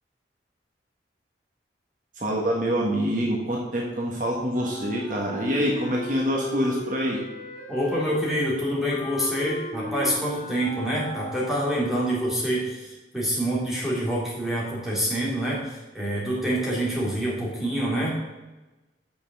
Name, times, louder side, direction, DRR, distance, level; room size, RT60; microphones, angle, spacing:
voice 1, 2.2-7.2, equal, 45° right, -2 dB, 1.3 m, -26 dB
Wind instrument woodwind instrument, 4.5-11.9, left 3 dB, 55° left, 2.7 m, -36 dB
voice 2, 7.7-18.2, right 1 dB, ahead, -6 dB, 2.6 m, -26 dB
6.7 x 5.8 x 6.5 m, 1.1 s
head